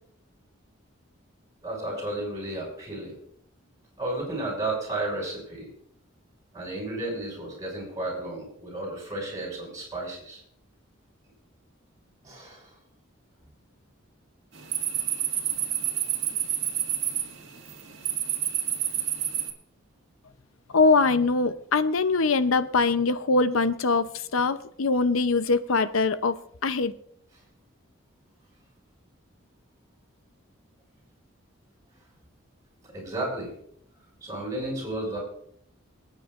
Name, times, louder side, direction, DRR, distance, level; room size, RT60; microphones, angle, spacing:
voice 1, 1.6-3.2 4.0-5.7 6.5-10.4 12.2-12.7 32.9-33.5 34.2-35.2, right 2 dB, 15° right, -3 dB, 6.1 m, -33 dB
sound 1, 14.5-19.5, right 10 dB, 65° right, 1.9 m, -29 dB
voice 2, 20.7-26.4 26.6-26.9, left 3 dB, 85° left, 12 dB, 0.7 m, -23 dB
27.5 x 9.1 x 2.5 m, 0.69 s
head